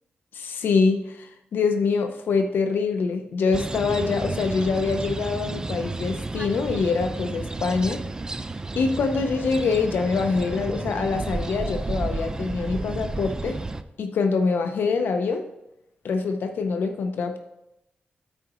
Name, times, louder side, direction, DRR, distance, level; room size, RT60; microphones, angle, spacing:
voice 1, 0.3-8.0 8.8-13.6 14.0-15.5 16.0-17.4, left 4 dB, 75° left, 6 dB, 0.6 m, -25 dB
sound 1, 3.5-13.8, right 2 dB, 20° right, 0.4 m, -32 dB
13.0 x 4.8 x 3.0 m, 0.88 s
wide cardioid pair, 120°, 4 cm